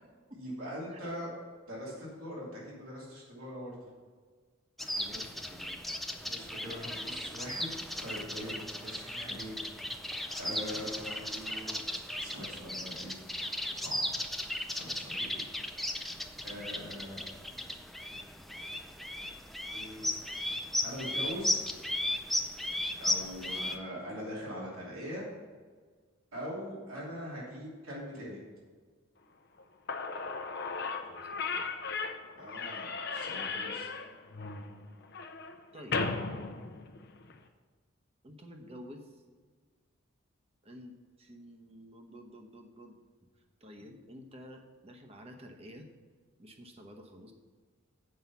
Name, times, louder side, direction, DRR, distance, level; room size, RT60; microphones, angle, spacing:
voice 1, 0.4-1.3 1.7-1.9 2.2-3.9 6.3-7.7 8.0-9.6 10.1-11.8 12.2-13.2 13.7-14.0 14.7-15.4 15.9-16.1 16.4-17.2 19.7-20.4 20.8-21.6 23.0-25.2 26.3-28.4 32.3-33.9, equal, 85° right, -5 dB, 2.8 m, -42 dB
sound 1, 4.8-23.8, left 1 dB, ahead, 0.4 m, -36 dB
voice 2, 5.0-6.0 10.5-10.9 23.4-23.7 31.0-31.8 35.7-36.2 38.2-39.2 40.6-43.0 43.4-45.9 46.4-47.3, equal, 30° right, 3 dB, 0.9 m, -51 dB
Slam / Squeak, 29.6-29.7 29.9-37.4, left 4 dB, 50° left, 0.7 m, -36 dB
7.7 x 5.6 x 7.0 m, 1.5 s
head